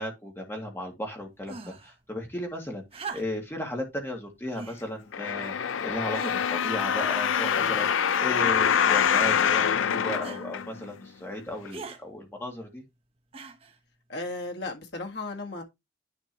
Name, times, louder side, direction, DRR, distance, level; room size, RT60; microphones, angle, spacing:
voice 1, 0.0-5.5 5.8-12.8, left 1 dB, 10° left, 2.1 m, -35 dB
sound 1, 1.5-1.9 2.9-3.6 4.5-4.8 5.6-5.7 6.1-6.6 7.4-8.0 8.9-9.3 10.2-10.5 11.7-12.0 13.3-13.8 14.8-14.9, right 4 dB, 30° right, 0.9 m, -41 dB
sound 2, 5.1-11.0 11.6-11.7, left 8 dB, 90° left, 0.5 m, -25 dB
voice 2, 14.1-15.6, left 2 dB, 60° left, 1.7 m, -35 dB
10.5 x 4.4 x 3.0 m
head